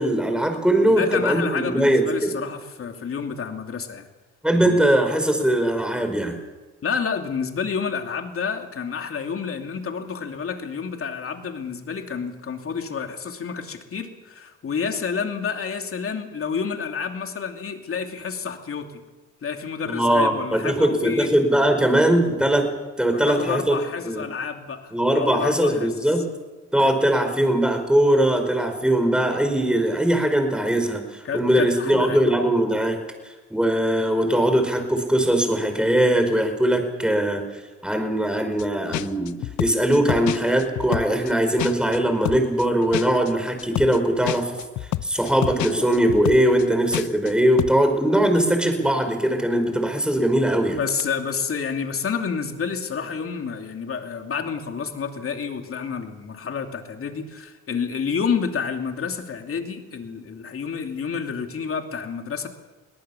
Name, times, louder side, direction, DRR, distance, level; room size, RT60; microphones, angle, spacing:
voice 1, 0.0-2.3 4.4-6.3 19.9-22.7 23.0-23.8 24.0-24.2 24.9-26.2 26.7-33.0 33.2-37.4 37.8-44.5 45.0-50.8, right 1 dB, 5° right, 6 dB, 5.0 m, -21 dB
voice 2, 0.8-4.1 4.5-4.8 6.8-18.9 19.4-21.3 23.1-25.9 31.2-32.2 50.7-62.5, left 6 dB, 50° left, 5 dB, 2.8 m, -29 dB
sound 1, 38.6-38.7 38.9-42.0 42.3-47.3 47.6-47.8, left 15 dB, 80° left, 0.8 m, -28 dB
22.5 x 18.5 x 7.2 m, 1.2 s
cardioid pair, 90°, 30 cm